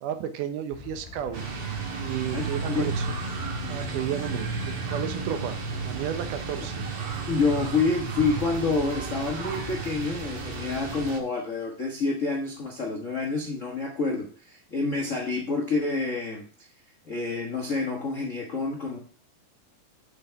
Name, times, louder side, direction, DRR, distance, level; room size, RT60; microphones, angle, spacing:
voice 1, 0.0-1.4 2.0-3.0 3.7-4.5 4.9-5.6 5.8-6.8, right 9 dB, 80° right, 9 dB, 2.4 m, -32 dB
sound 1, 0.7-11.1, left 3 dB, 15° left, 2.7 m, -43 dB
sound 2, 1.3-11.2, right 5 dB, 50° right, 2.1 m, -33 dB
voice 2, 2.3-2.9 7.3-16.7 17.1-19.0, left 4 dB, 70° left, 1 dB, 0.7 m, -28 dB
6.7 x 6.3 x 5.7 m, 0.43 s
omnidirectional pair, 3.7 m